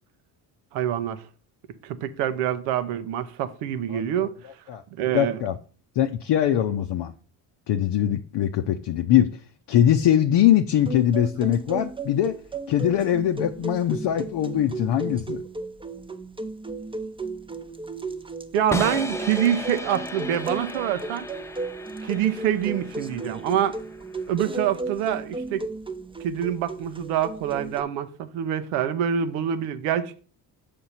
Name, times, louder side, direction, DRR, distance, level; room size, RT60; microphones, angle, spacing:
voice 1, 0.7-1.2 1.8-4.4 5.0-5.4 18.5-21.3 22.0-23.8 24.3-25.7 26.2-30.2, right 10 dB, 80° right, 0.8 m, -26 dB
voice 2, 3.9-4.3 4.7-4.8 5.1-5.6 5.9-7.1 7.7-12.4 12.7-15.4, left 11 dB, 55° left, 0.7 m, -22 dB
sound 1, 10.7-27.8, right 3 dB, 10° right, 0.8 m, -35 dB
sound 2, 18.7-24.7, left 1 dB, 5° left, 0.4 m, -35 dB
6.7 x 5.3 x 4.2 m
hypercardioid pair, 55°, 49 cm